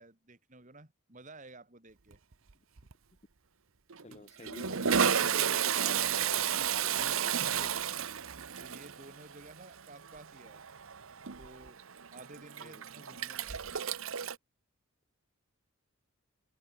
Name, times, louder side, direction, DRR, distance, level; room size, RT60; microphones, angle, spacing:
voice 1, 0.0-2.2 4.1-4.2 7.8-8.3 8.6-10.6 11.4-11.8 12.1-13.6, right 2 dB, 35° right, 2.3 m, -53 dB
Toilet flush, 2.1-2.5 2.8-2.9 3.9-14.4, right 8 dB, 65° right, 0.9 m, -32 dB
voice 2, 4.0-7.9 12.6-12.8, left 2 dB, 30° left, 0.8 m, -50 dB
open air
head